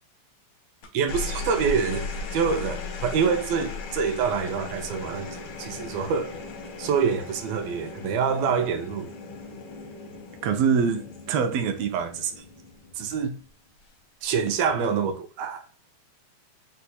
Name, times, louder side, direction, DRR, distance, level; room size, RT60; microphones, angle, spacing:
sound 1, 0.8-13.4 14.7-15.1, left 4 dB, 70° left, 1.2 m, -37 dB
voice 1, 0.9-6.3 6.8-9.1 10.4-12.4 12.9-13.3 14.2-15.6, right 6 dB, 80° right, 1.5 m, -26 dB
4.5 x 2.3 x 4.1 m
omnidirectional pair, 3.3 m